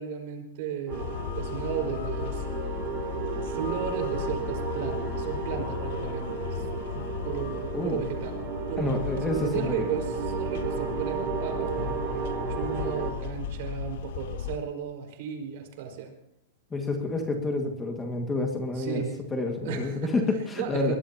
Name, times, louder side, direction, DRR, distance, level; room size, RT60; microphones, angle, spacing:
voice 1, 0.0-2.4 3.4-8.4 8.7-16.1 18.7-19.2 19.5-21.0, right 8 dB, 50° right, 4 dB, 4.9 m, -35 dB
sound 1, 0.9-14.6, left 9 dB, 55° left, 1.2 m, -36 dB
sound 2, 0.9-13.1, right 6 dB, 30° right, 4.9 m, -34 dB
voice 2, 8.8-9.8 16.7-19.0 19.3-21.0, left 2 dB, 10° left, 3 dB, 1.9 m, -29 dB
23.0 x 20.5 x 2.9 m, 0.76 s
supercardioid pair, 170°, 0 cm